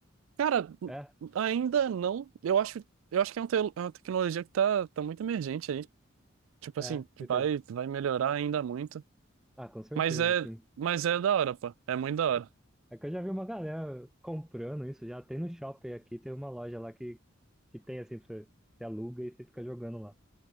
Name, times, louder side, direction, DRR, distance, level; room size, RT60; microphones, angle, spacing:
voice 1, 0.4-0.9 1.4-2.8 3.1-5.9 6.6-7.0 7.3-9.0 10.0-10.5 10.8-12.5, right 8 dB, 85° right, 0.3 m, -29 dB
voice 2, 6.8-7.5 9.6-10.6 12.9-17.2 17.7-18.5 18.8-20.1, equal, ahead, 0.5 m, -40 dB
head